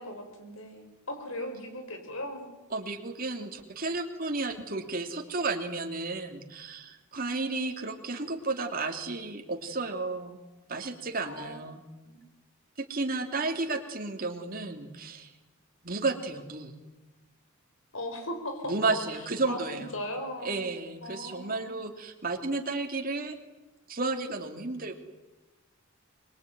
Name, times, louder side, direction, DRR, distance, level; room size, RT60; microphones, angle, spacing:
voice 1, 0.0-2.5 11.2-11.6 12.0-12.2 17.9-18.7 19.5-20.8 21.0-21.8, left 1 dB, 75° left, 6 dB, 5.5 m, -38 dB
voice 2, 2.7-10.4 10.7-11.8 12.8-15.3 15.8-16.7 18.6-20.0 20.4-23.4 23.9-25.0, right 3 dB, 45° right, 4 dB, 3.0 m, -32 dB
25.5 x 22.5 x 9.6 m, 1.1 s
head